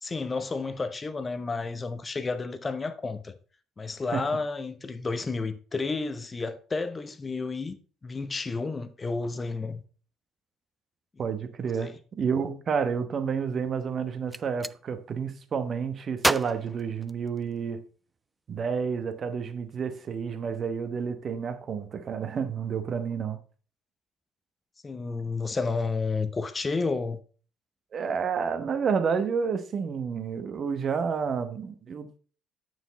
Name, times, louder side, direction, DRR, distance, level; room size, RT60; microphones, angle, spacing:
voice 1, 0.0-3.3 3.8-7.8 8.0-9.8 11.8-12.0 24.8-27.2, left 4 dB, 25° left, 0.9 m, -31 dB
voice 2, 11.2-17.8 18.5-23.4 27.9-32.2, right 6 dB, 40° right, 1.1 m, -30 dB
Gunshot gunfire, 14.1-14.8 16.2-17.7, right 2 dB, 10° right, 0.3 m, -30 dB
9.2 x 6.3 x 4.0 m
figure-of-eight pair, 50°, 0 cm